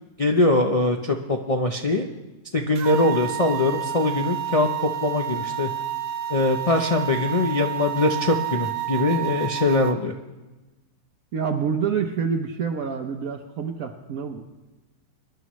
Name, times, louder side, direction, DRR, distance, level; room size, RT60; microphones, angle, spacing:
voice 1, 0.2-2.1 2.5-5.7 6.3-10.1, left 2 dB, 55° left, 2 dB, 0.3 m, -22 dB
sound 1, 2.8-9.9, right 10 dB, 80° right, 1.3 m, -30 dB
voice 2, 11.3-14.5, right 6 dB, 65° right, 3 dB, 1.1 m, -27 dB
23.5 x 11.0 x 3.1 m, 1.1 s
omnidirectional pair, 1.7 m